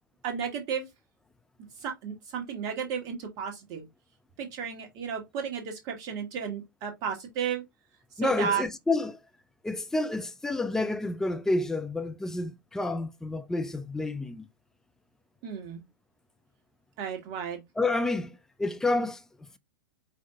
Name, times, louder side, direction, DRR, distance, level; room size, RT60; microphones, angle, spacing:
voice 1, 0.2-0.9 1.8-3.9 4.4-7.6 8.2-8.6 15.4-15.8 17.0-17.6, right 7 dB, 35° right, 1.6 m, -33 dB
voice 2, 8.2-9.2 9.6-14.5 17.8-19.6, left 2 dB, 5° left, 0.4 m, -29 dB
5.0 x 2.6 x 3.5 m
figure-of-eight pair, 105°, 11 cm